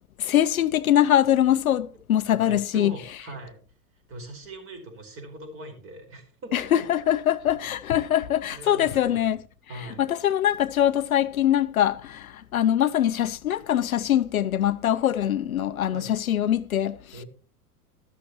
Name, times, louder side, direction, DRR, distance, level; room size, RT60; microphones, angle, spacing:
voice 1, 0.2-2.9 6.5-9.4 9.7-17.2, left 11 dB, 65° left, 0.8 m, -23 dB
voice 2, 2.4-3.6 4.1-6.6 8.5-9.4 9.7-10.0 15.9-16.1 17.1-17.3, right 1 dB, 30° right, 4.8 m, -41 dB
13.0 x 13.0 x 3.0 m
figure-of-eight pair, 100°, 46 cm